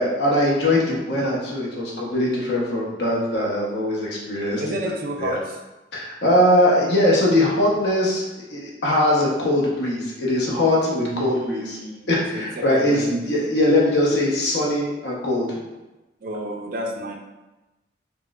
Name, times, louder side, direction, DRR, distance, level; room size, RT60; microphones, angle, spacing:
voice 1, 0.0-4.8 5.2-5.4 5.9-8.2 8.5-11.8 12.1-15.6, left 1 dB, 65° left, -4 dB, 0.8 m, -21 dB
voice 2, 4.6-5.6 11.0-13.5 16.2-17.2, right 1 dB, 45° right, 2 dB, 0.3 m, -31 dB
4.3 x 2.1 x 2.3 m, 1.1 s
head